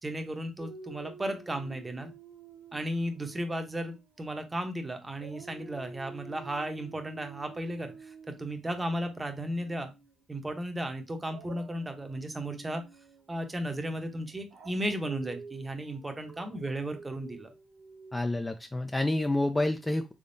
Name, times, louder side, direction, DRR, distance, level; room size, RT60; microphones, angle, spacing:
voice 1, 0.0-2.1 2.7-9.9 10.3-12.8 13.3-17.5, right 1 dB, 20° right, 6 dB, 0.8 m, -35 dB
Dog, 0.6-4.7 5.1-10.1 11.2-18.2, right 4 dB, 70° right, 1.3 m, -50 dB
voice 2, 18.1-20.1, left 1 dB, 15° left, 6 dB, 0.4 m, -28 dB
3.5 x 3.5 x 2.6 m, 0.25 s
cardioid pair, 90°, 0 cm